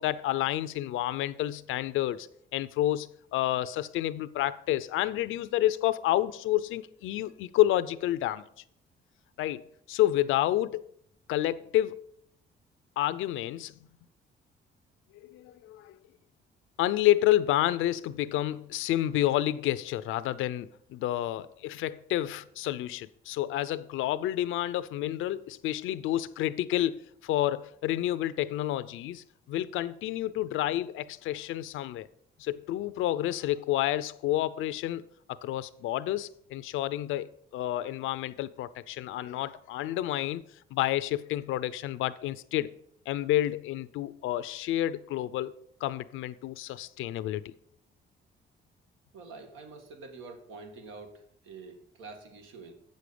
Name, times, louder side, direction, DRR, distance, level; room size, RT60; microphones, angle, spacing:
voice 1, 0.0-2.3 2.5-8.4 9.4-9.6 9.9-10.8 11.3-12.0 13.0-13.7 15.2-16.0 16.8-32.1 32.4-35.0 35.4-40.4 40.7-42.7 43.1-45.5 45.8-47.5, left 14 dB, 85° left, 0.5 m, -29 dB
voice 2, 49.1-52.7, right 4 dB, 85° right, 1.8 m, -46 dB
8.2 x 6.4 x 6.8 m
cardioid pair, 90°, 20 cm